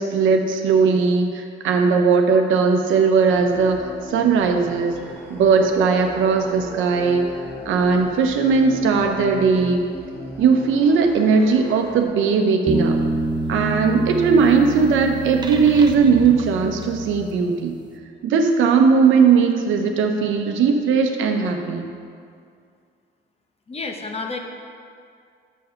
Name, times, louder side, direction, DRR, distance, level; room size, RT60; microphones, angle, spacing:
voice 1, 0.0-5.0 5.3-7.2 7.7-9.8 10.4-13.0 13.5-17.7 18.2-21.9, right 5 dB, 80° right, 4 dB, 0.8 m, -18 dB
sound 1, 3.3-12.0, equal, 15° left, 1.6 m, -36 dB
sound 2, 12.7-17.6, right 2 dB, 20° right, 0.7 m, -27 dB
voice 2, 23.7-24.4, left 3 dB, 30° left, 3 dB, 0.9 m, -30 dB
6.3 x 5.8 x 5.7 m, 2.3 s
cardioid pair, 90°, 20 cm